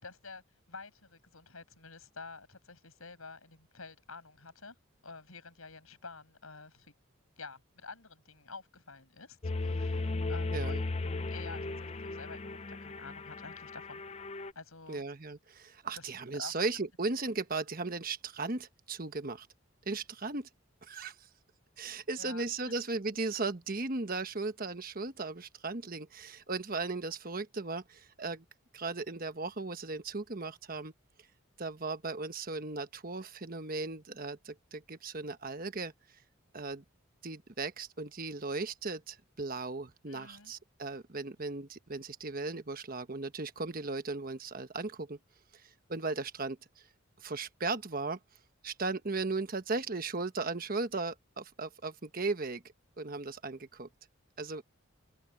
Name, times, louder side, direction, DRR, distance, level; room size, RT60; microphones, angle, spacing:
voice 1, 0.0-4.8 5.0-6.9 7.4-10.9 11.3-14.0 14.5-15.0 16.0-16.5 22.2-22.7 40.1-40.5, left 4 dB, 90° left, 7.8 m, -49 dB
sound 1, 9.4-14.5, left 3 dB, 30° left, 0.6 m, -36 dB
voice 2, 10.5-10.8 14.9-19.5 19.9-20.5 20.8-21.1 21.8-28.4 28.7-30.9 31.6-35.9 36.5-36.8 37.2-45.2 45.5-46.6 47.2-48.2 48.6-52.6 53.0-53.9 54.4-54.6, right 3 dB, 45° right, 1.2 m, -37 dB
open air
head